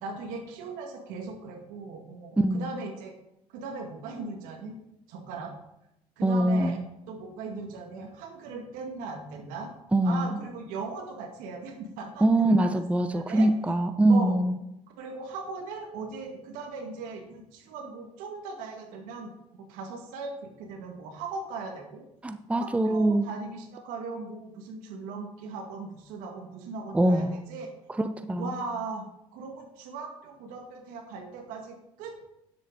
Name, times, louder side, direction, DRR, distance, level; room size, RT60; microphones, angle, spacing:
voice 1, 0.0-3.1 3.5-4.7 5.1-5.5 6.2-9.7 10.0-12.8 13.1-13.5 14.1-14.4 15.0-22.1 22.6-27.7 28.4-29.0 29.3-32.3, right 4 dB, 80° right, 3 dB, 2.1 m, -39 dB
voice 2, 2.4-2.7 6.2-6.8 9.9-10.3 12.2-14.6 22.2-23.3 26.9-27.4 28.0-28.5, right 1 dB, 10° right, 10 dB, 0.6 m, -23 dB
9.8 x 7.9 x 4.1 m, 0.85 s
supercardioid pair, 80°, 14 cm